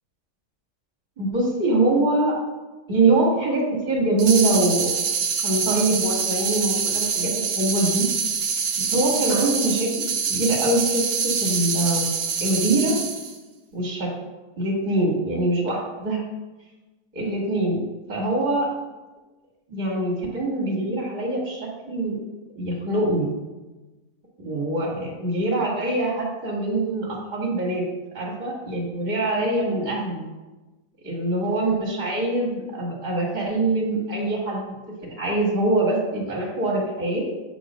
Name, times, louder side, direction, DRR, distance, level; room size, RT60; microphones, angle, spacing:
voice 1, 1.2-2.3 2.9-4.9 5.4-8.1 8.9-12.1 12.4-13.0 13.7-14.1 14.6-16.2 17.1-17.8 18.1-18.7 19.7-22.2 22.5-23.3 24.4-27.8 28.1-30.2 31.0-34.8 35.0-37.3, right 2 dB, 25° right, -3 dB, 1.8 m, -24 dB
sound 1, 4.2-13.4, right 6 dB, 65° right, 1.3 m, -25 dB
8.3 x 3.0 x 6.2 m, 1.1 s
omnidirectional pair, 1.9 m